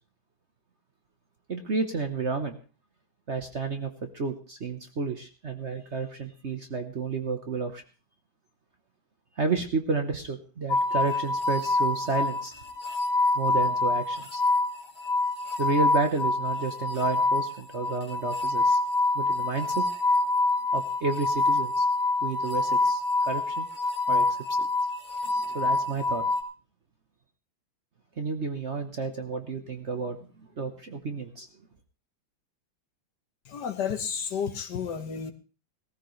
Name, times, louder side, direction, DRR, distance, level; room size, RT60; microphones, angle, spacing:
voice 1, 1.5-2.6 3.3-7.8 9.4-12.5 13.3-14.4 15.6-18.8 19.1-19.9 20.7-21.9 22.2-23.7 24.1-24.7 25.4-26.2 28.2-30.2 30.6-31.5, right 4 dB, 40° right, 6 dB, 1.2 m, -31 dB
sound 1, 10.7-26.4, left 2 dB, 90° left, 3.6 m, -26 dB
voice 2, 33.5-35.3, left 7 dB, 60° left, 9 dB, 1.6 m, -31 dB
18.5 x 14.0 x 3.2 m, 0.35 s
omnidirectional pair, 2.1 m